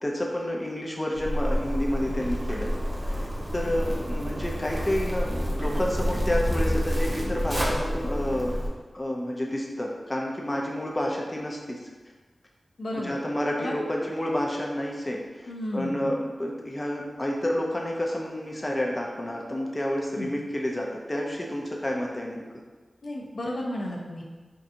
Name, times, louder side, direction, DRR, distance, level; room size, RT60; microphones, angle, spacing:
voice 1, 0.0-2.7 3.0-3.2 3.5-8.5 8.9-11.8 12.9-22.4, left 1 dB, 20° left, -1 dB, 0.5 m, -29 dB
Zipper (clothing), 1.1-8.7, equal, 25° right, 0.7 m, -28 dB
voice 2, 12.8-13.2 13.6-14.1 15.5-16.1 20.1-20.3 23.0-24.2, left 1 dB, 75° left, -2 dB, 0.5 m, -33 dB
4.5 x 2.7 x 2.5 m, 1.3 s
wide cardioid pair, 85°, 0 cm